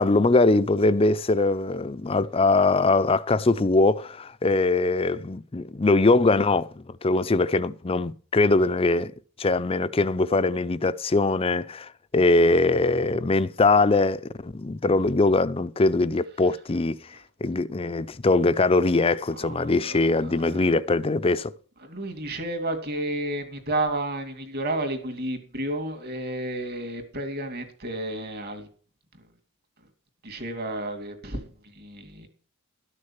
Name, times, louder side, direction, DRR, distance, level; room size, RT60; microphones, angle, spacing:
voice 1, 0.0-9.1 9.4-17.0 17.4-21.5, left 3 dB, 25° left, 0.5 m, -22 dB
voice 2, 19.3-20.8 21.8-28.7 29.1-29.3 29.8-29.9 30.2-32.3, right 1 dB, 50° right, 2.5 m, -32 dB
12.5 x 6.6 x 7.2 m
head